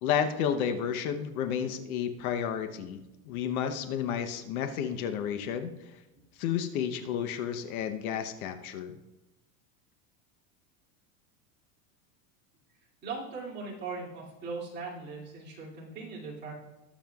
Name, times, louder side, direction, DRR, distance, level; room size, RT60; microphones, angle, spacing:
voice 1, 0.0-6.0 6.4-9.0, left 8 dB, 65° left, 8 dB, 0.9 m, -31 dB
voice 2, 13.0-16.5, right 4 dB, 20° right, -6 dB, 2.5 m, -39 dB
20.0 x 7.2 x 2.3 m, 1.0 s
supercardioid pair, 165°, 46 cm